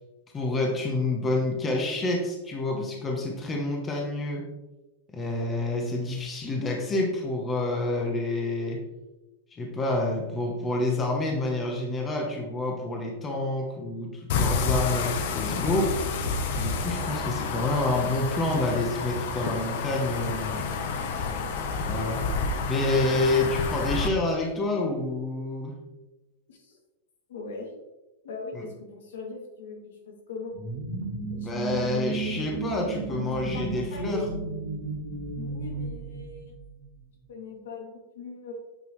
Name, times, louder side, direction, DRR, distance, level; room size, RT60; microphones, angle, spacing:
voice 1, 0.3-4.4 5.1-8.8 9.5-16.0 16.6-20.7 21.8-22.2 22.7-25.7 28.5-28.6 31.4-34.3, left 2 dB, 15° left, 0 dB, 0.9 m, -28 dB
sound 1, 14.3-24.1, left 4 dB, 45° left, 0.8 m, -29 dB
voice 2, 27.3-27.7 28.2-30.5 31.3-32.6 33.1-34.3 35.3-36.5 37.3-38.5, left 4 dB, 80° left, 1 dB, 2.4 m, -40 dB
sound 2, 30.5-37.0, right 3 dB, 40° right, 1.5 m, -34 dB
9.0 x 6.0 x 3.1 m, 1.1 s
supercardioid pair, 175°, 0 cm